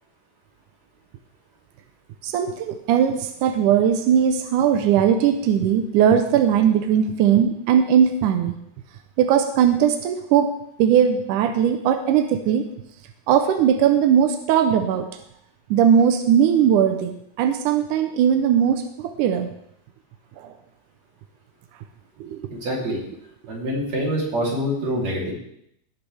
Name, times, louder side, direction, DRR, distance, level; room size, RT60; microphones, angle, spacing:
voice 1, 2.2-8.6 9.2-12.7 13.3-15.1 15.7-19.5 20.4-20.5 22.2-22.4, right 8 dB, 80° right, 7 dB, 1.9 m, -19 dB
voice 2, 22.5-23.0 23.5-25.3, equal, 45° right, -3 dB, 4.3 m, -25 dB
17.5 x 9.8 x 3.4 m, 0.74 s
omnidirectional pair, 4.4 m